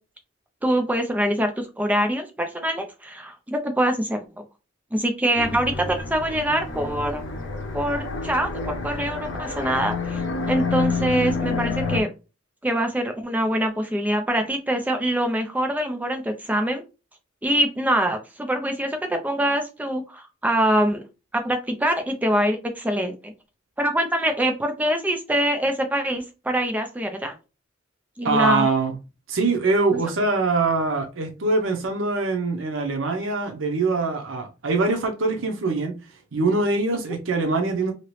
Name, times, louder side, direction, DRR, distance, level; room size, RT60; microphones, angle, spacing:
voice 1, 0.6-4.4 4.9-7.2 7.7-10.2 10.5-12.1 12.6-16.8 17.4-21.0 21.3-23.3 23.8-27.3 28.2-28.7, right 1 dB, 10° right, 0.4 m, -24 dB
sound 1, 5.4-12.0, left 4 dB, 65° left, 0.7 m, -28 dB
voice 2, 28.2-29.0 29.3-36.0 36.3-37.9, right 3 dB, 85° right, 0.7 m, -23 dB
2.9 x 2.9 x 3.1 m
head